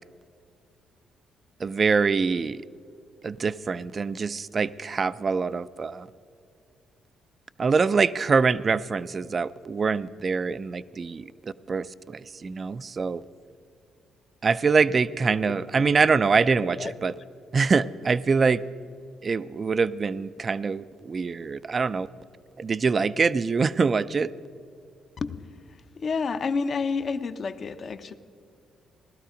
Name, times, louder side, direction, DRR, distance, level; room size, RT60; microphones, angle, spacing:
voice 1, 1.6-2.6 3.2-6.1 7.6-13.2 14.4-17.1 17.5-18.6 19.2-22.1 22.6-24.3, right 5 dB, 40° right, 16 dB, 0.4 m, -24 dB
voice 2, 15.5-16.0 16.6-17.2 25.2-25.3 25.7-28.1, left 5 dB, 45° left, 10 dB, 0.8 m, -31 dB
17.5 x 12.5 x 5.0 m, 2.5 s
cardioid pair, 90°, 0 cm